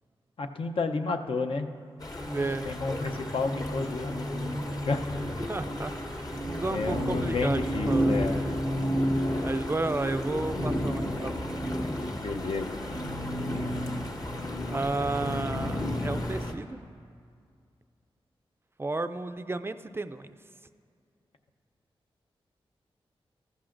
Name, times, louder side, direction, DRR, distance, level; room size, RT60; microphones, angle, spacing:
voice 1, 0.4-1.7 2.6-5.2 6.7-8.4 12.2-12.8, left 3 dB, 65° left, 5 dB, 0.7 m, -31 dB
sound 1, 2.0-16.5, equal, 40° left, 1.1 m, -31 dB
voice 2, 2.3-2.6 5.5-7.6 7.9-8.6 9.4-11.7 14.7-16.8 18.8-20.3, right 2 dB, 25° right, 11 dB, 0.4 m, -33 dB
14.0 x 13.5 x 2.5 m, 2.2 s
cardioid pair, 70°, 10 cm